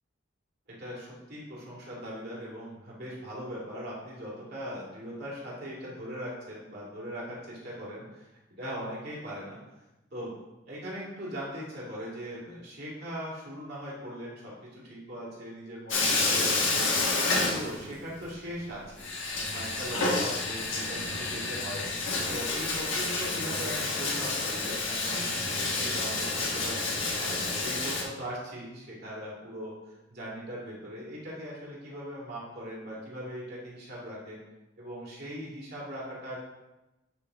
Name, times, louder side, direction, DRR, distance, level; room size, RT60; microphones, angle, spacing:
voice 1, 0.7-9.6 10.1-10.4 10.7-16.9 17.3-19.1 19.5-21.8 22.3-26.8 27.2-29.7 30.1-34.4 34.8-36.4, equal, 60° right, -6 dB, 2.3 m, -40 dB
Bathtub (filling or washing), 15.9-18.2 18.4-18.5 19.0-28.0, left 3 dB, 80° left, 1.3 m, -29 dB
8.8 x 3.4 x 3.9 m, 1.0 s
head